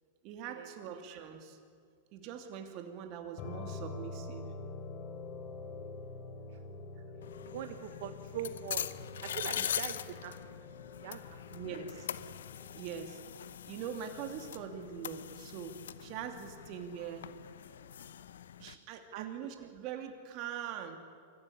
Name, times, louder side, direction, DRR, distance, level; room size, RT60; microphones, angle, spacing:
voice 1, 0.2-1.6 2.1-4.5 9.6-9.7 11.5-12.1 12.7-13.2 13.7-17.3 18.6-21.0, right 8 dB, 50° right, 5 dB, 2.6 m, -43 dB
sound 1, 3.4-12.9, left 3 dB, 45° left, 3.2 m, -46 dB
voice 2, 6.6-7.0 7.5-8.9 9.2-10.3 11.0-11.4 19.1-19.3 19.6-19.7, right 10 dB, 65° right, 8 dB, 1.2 m, -43 dB
sound 2, 7.2-18.7, left 9 dB, 85° left, 0.8 m, -42 dB
24.5 x 15.0 x 9.9 m, 2.1 s
hypercardioid pair, 125°, 0 cm